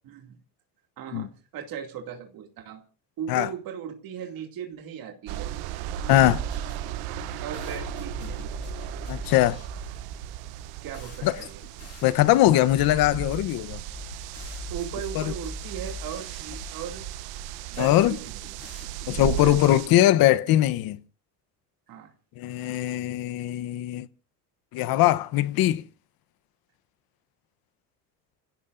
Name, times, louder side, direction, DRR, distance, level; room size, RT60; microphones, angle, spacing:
voice 1, 0.0-0.3 1.0-2.8 3.2-5.5 7.4-8.5 10.8-11.6 14.7-17.1 17.7-18.4 19.4-20.1 21.9-22.1, right 9 dB, 65° right, 2.5 m, -38 dB
sound 1, 5.3-19.9, right 13 dB, 85° right, 0.9 m, -36 dB
sound 2, 5.8-19.4, left 4 dB, 40° left, 3.5 m, -43 dB
voice 2, 6.1-6.4 9.1-9.6 11.2-11.4 12.0-13.8 15.1-15.3 17.8-18.2 19.1-21.0 22.4-24.1 24.7-25.8, left 14 dB, 70° left, 0.9 m, -21 dB
30.0 x 16.5 x 2.6 m
supercardioid pair, 90°, 37 cm